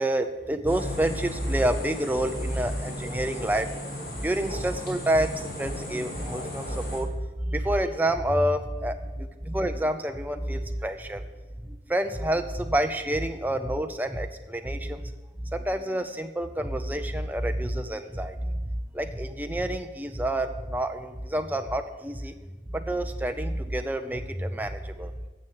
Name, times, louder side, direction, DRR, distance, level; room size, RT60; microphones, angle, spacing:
voice 1, 0.0-3.8 4.1-7.1 7.4-11.2 11.6-15.1 15.5-18.5 18.9-22.3 22.7-25.1, right 1 dB, 10° right, 6 dB, 0.6 m, -28 dB
sound 1, 0.7-7.0, left 1 dB, 65° left, 2.3 m, -36 dB
9.6 x 7.2 x 7.0 m, 1.2 s
head